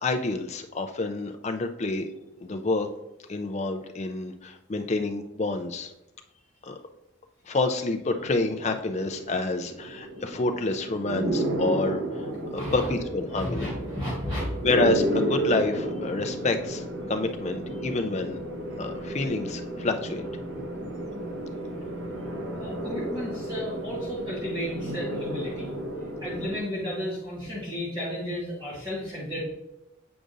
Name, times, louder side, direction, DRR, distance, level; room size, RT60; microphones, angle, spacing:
voice 1, 0.0-2.1 2.4-2.9 3.3-5.9 6.6-6.8 7.5-13.7 14.6-18.4 18.8-20.3, left 3 dB, 35° left, 6 dB, 0.4 m, -28 dB
sound 1, 8.1-26.6, right 1 dB, 75° right, 0.9 m, -32 dB
voice 2, 12.5-12.9 13.3-14.4 22.6-25.7 26.2-29.4, equal, 20° right, -9 dB, 1.6 m, -33 dB
7.9 x 5.0 x 2.6 m, 0.92 s
head